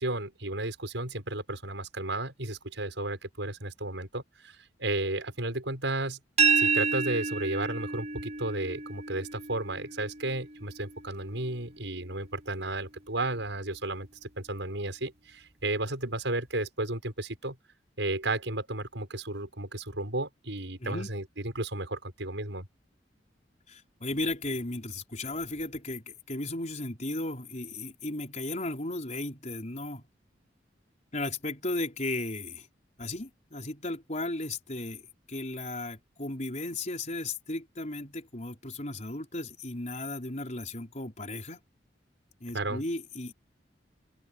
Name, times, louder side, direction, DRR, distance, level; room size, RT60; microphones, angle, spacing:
voice 1, 0.0-6.2 6.6-17.6 18.0-22.7 42.5-42.8, right 2 dB, 85° right, 6.2 m, -33 dB
sound 1, 6.4-12.1, right 5 dB, 40° right, 7.9 m, -30 dB
voice 2, 20.8-21.1 23.7-30.1 31.1-32.7 33.0-35.0 35.3-41.6 42.4-43.3, left 2 dB, 40° left, 4.7 m, -35 dB
open air
head